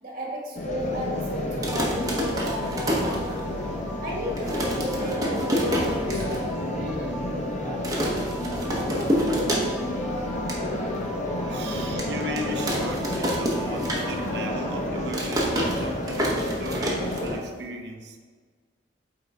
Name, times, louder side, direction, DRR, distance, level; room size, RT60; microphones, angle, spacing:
voice 1, 0.0-3.6 4.0-6.7 11.5-11.7, left 1 dB, 45° right, -2 dB, 1.3 m, -34 dB
sound 1, 0.5-17.4, left 1 dB, 40° left, 0.8 m, -30 dB
sound 2, 1.5-3.8 4.1-4.2 4.4-6.4 6.8-6.9 7.1-7.5 7.8-10.0 10.3-10.6 11.1-11.2 12.0-14.4 14.7-17.7, equal, 20° right, 1.0 m, -28 dB
sound 3, 1.7-14.9, right 2 dB, ahead, 0.4 m, -40 dB
voice 2, 6.8-7.2 7.6-8.1 9.0-9.7 10.2-10.3 11.1-18.2, right 1 dB, 65° right, 4 dB, 0.6 m, -37 dB
8.8 x 3.9 x 3.4 m, 1.5 s
head